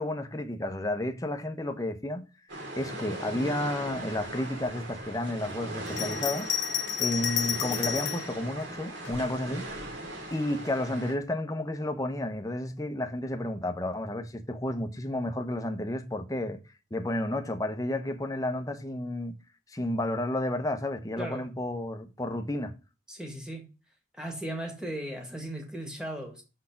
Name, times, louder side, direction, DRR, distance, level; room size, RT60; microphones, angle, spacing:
voice 1, 0.0-2.2 2.8-6.5 7.0-9.7 10.3-16.6 16.9-19.3 19.7-22.7, left 1 dB, 20° left, 0.8 m, -31 dB
sound 1, 2.5-11.1, right 1 dB, 90° right, 2.9 m, -39 dB
Bell, 5.9-8.3 9.0-10.0, left 9 dB, 90° left, 0.9 m, -31 dB
voice 2, 21.2-21.5 23.1-23.7 24.1-26.4, right 1 dB, 5° right, 1.8 m, -37 dB
6.4 x 4.2 x 5.6 m
head